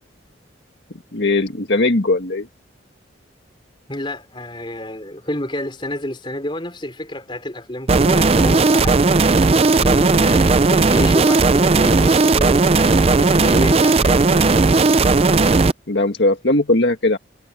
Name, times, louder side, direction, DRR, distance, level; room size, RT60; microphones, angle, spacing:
voice 1, 1.1-2.5 15.9-17.2, left 2 dB, 65° left, 1.7 m, -18 dB
voice 2, 3.9-9.1 9.7-14.9, left 1 dB, 25° left, 4.0 m, -29 dB
sound 1, 7.9-15.7, right 3 dB, 30° right, 0.4 m, -15 dB
head